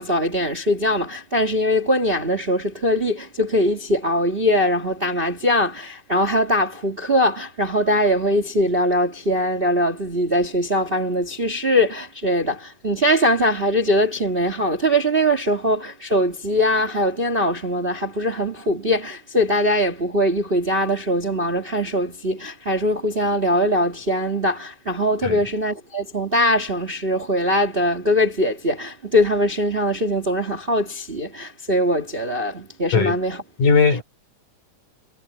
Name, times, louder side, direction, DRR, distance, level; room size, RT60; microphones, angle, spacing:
voice 1, 0.0-33.4, equal, 20° right, 1.7 m, -21 dB
voice 2, 33.6-34.0, left 5 dB, 75° left, 5.3 m, -18 dB
omnidirectional pair, 3.8 m